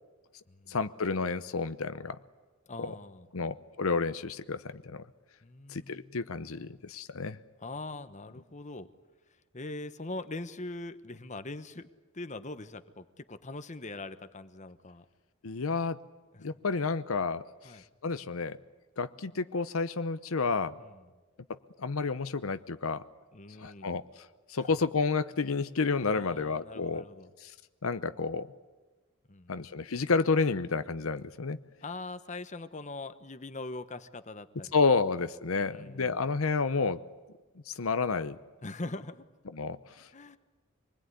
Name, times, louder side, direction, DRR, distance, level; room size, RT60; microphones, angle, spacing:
voice 1, 0.7-2.2 3.3-5.0 5.7-7.4 15.4-16.0 16.4-17.4 18.0-18.6 19.0-20.7 21.8-23.0 23.6-24.0 24.5-27.0 27.4-27.5 27.8-28.5 29.5-31.6 34.7-37.0 37.7-38.4 39.5-40.1, left 4 dB, 80° left, 12 dB, 0.8 m, -30 dB
voice 2, 2.7-3.5 5.4-6.2 7.6-8.9 9.5-11.9 12.1-15.0 16.3-16.5 17.6-17.8 20.8-21.0 23.3-23.9 26.1-27.3 29.3-29.6 31.8-34.7 35.5-36.2 38.6-39.2 40.1-40.4, left 2 dB, 35° left, 10 dB, 1.1 m, -42 dB
26.0 x 20.5 x 9.6 m, 1.3 s
head